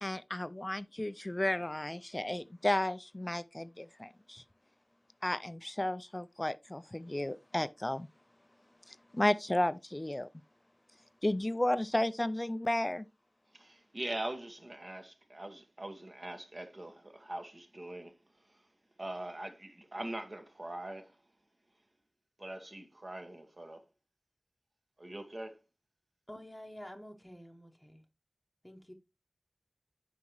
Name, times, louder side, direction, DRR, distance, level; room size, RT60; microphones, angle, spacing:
voice 1, 0.0-4.4 5.2-8.1 8.9-10.3 11.2-13.1, left 1 dB, 25° left, 0.3 m, -33 dB
voice 2, 13.5-18.1 18.5-18.6 19.0-21.2 22.4-23.8 25.0-25.6, right 1 dB, 45° right, 1.4 m, -42 dB
voice 3, 26.3-28.0 28.6-28.9, equal, 10° left, 0.9 m, -49 dB
8.3 x 5.2 x 3.0 m
wide cardioid pair, 60°, 0 cm